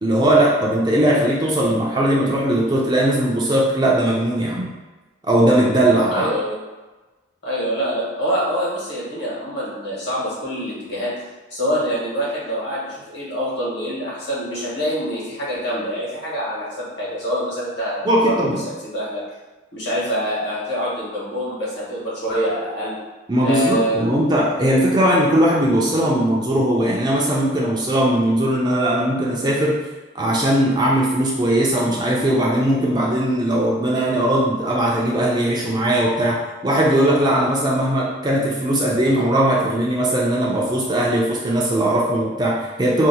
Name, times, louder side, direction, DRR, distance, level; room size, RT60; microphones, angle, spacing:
voice 1, 0.0-4.7 5.3-6.3 18.0-18.6 23.3-29.8 30.1-43.1, right 1 dB, 20° right, -4 dB, 0.4 m, -19 dB
voice 2, 6.1-6.6 7.4-11.1 11.5-18.3 18.9-19.2 19.7-22.9 23.4-24.1, equal, 55° left, -7 dB, 1.3 m, -25 dB
2.7 x 2.1 x 4.0 m, 1.2 s
head